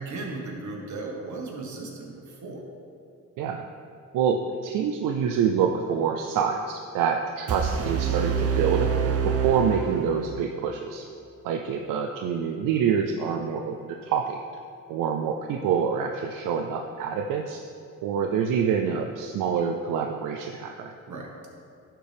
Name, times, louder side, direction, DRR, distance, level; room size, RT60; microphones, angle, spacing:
voice 1, 0.0-2.6 21.1-21.3, right 3 dB, 65° right, 0 dB, 1.6 m, -36 dB
voice 2, 4.1-8.9 9.2-11.1 11.4-14.4 14.9-17.6 18.0-20.9, right 7 dB, 85° right, 4 dB, 0.5 m, -26 dB
sound 1, 7.5-10.5, right 6 dB, 50° right, 0.7 m, -26 dB
11.0 x 4.5 x 3.4 m, 2.6 s
cardioid pair, 70°, 32 cm